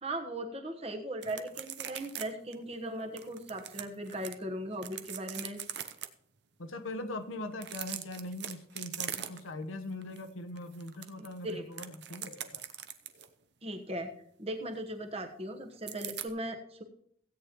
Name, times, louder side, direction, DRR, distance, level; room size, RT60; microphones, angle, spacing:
voice 1, 0.0-5.6 11.4-11.6 13.6-14.1 14.4-16.8, right 1 dB, 30° right, 4 dB, 1.2 m, -38 dB
sound 1, 1.2-2.3 2.5-2.6 3.2-4.3 4.8-6.1 7.5-9.6 10.0-10.2 10.6-13.3 15.9-16.3, right 10 dB, 55° right, 0.7 m, -41 dB
voice 2, 6.6-12.7, left 2 dB, 85° left, 7 dB, 1.0 m, -41 dB
16.0 x 8.9 x 3.1 m, 0.67 s
head